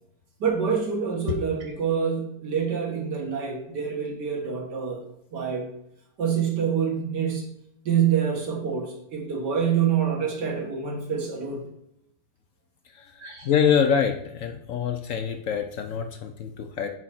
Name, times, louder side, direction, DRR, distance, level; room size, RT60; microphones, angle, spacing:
voice 1, 0.4-5.0 5.3-5.7 6.2-7.5 7.9-11.6 13.2-13.5, right 7 dB, 85° right, 0 dB, 2.1 m, -26 dB
voice 2, 13.4-16.9, left 7 dB, 65° left, 5 dB, 0.8 m, -25 dB
4.9 x 4.8 x 5.9 m, 0.80 s
omnidirectional pair, 1.8 m